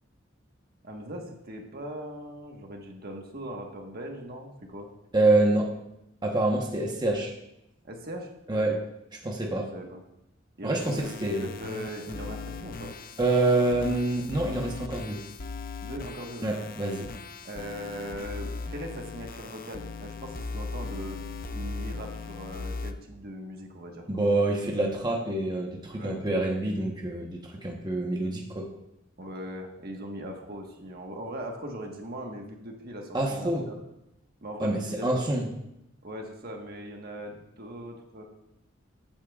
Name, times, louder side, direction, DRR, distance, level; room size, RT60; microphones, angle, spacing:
voice 1, 0.8-4.9 7.8-8.8 9.5-10.0 10.6-12.9 15.8-16.6 17.4-21.2 21.5-24.1 25.9-26.2 29.2-33.7 34.4-35.2 36.0-38.2, equal, 55° right, 1 dB, 1.4 m, -40 dB
voice 2, 5.1-5.7 6.2-7.3 8.5-8.7 9.2-9.7 10.6-11.5 13.2-15.2 16.4-17.1 24.1-28.7 33.1-33.7 34.6-35.5, right 2 dB, 20° right, 0 dB, 1.1 m, -26 dB
sound 1, 10.8-22.9, left 4 dB, 50° left, 0.6 m, -38 dB
15.0 x 8.8 x 2.4 m, 0.85 s
head